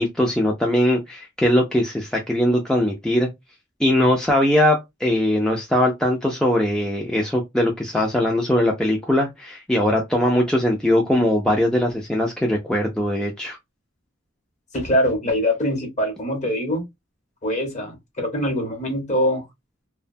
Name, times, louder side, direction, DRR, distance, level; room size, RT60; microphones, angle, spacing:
voice 1, 0.0-3.3 3.8-13.6, left 1 dB, 5° left, 0.4 m, -20 dB
voice 2, 14.7-16.8 17.4-19.5, equal, 35° left, 0.8 m, -23 dB
2.7 x 2.2 x 2.5 m
head